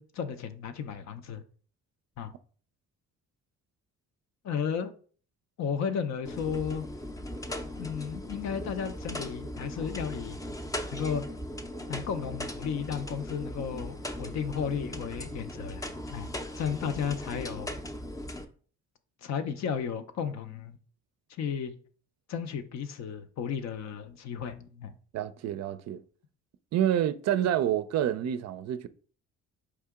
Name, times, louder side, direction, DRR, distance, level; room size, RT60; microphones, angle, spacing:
voice 1, 0.0-1.4 2.2-2.3 4.4-4.9 5.6-6.8 7.8-10.4 10.9-11.2 11.9-16.3 16.6-17.8 19.2-20.8 21.4-21.7 22.3-25.0, left 7 dB, 65° left, 0.6 m, -34 dB
sound 1, 6.2-18.4, left 1 dB, 10° left, 0.5 m, -38 dB
voice 2, 25.1-26.0 26.7-28.9, right 10 dB, 60° right, 0.4 m, -28 dB
4.8 x 2.8 x 3.5 m
cardioid pair, 90°, 30 cm